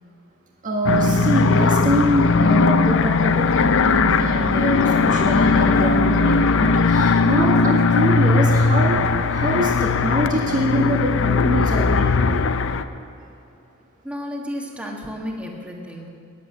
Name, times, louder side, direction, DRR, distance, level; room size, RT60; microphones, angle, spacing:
voice 1, 0.6-9.0 9.3-12.5, right 1 dB, 40° right, -1 dB, 1.7 m, -24 dB
sound 1, 0.9-12.8, left 4 dB, 65° left, 0.6 m, -18 dB
voice 2, 14.0-16.1, equal, 5° right, -1 dB, 1.6 m, -32 dB
15.0 x 10.5 x 7.6 m, 2.7 s
head